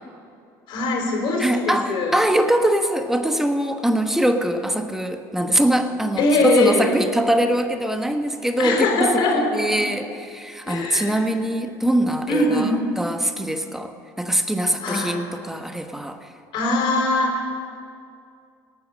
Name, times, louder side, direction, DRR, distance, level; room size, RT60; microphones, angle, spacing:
voice 1, 0.7-2.1 6.2-6.9 8.6-9.7 10.7-11.2 12.3-12.8 14.8-15.2 16.5-17.6, left 2 dB, 60° left, 1 dB, 3.7 m, -22 dB
voice 2, 1.4-16.3, right 1 dB, 5° right, 7 dB, 1.2 m, -23 dB
19.0 x 8.9 x 6.5 m, 2.4 s
hypercardioid pair, 80°, 9 cm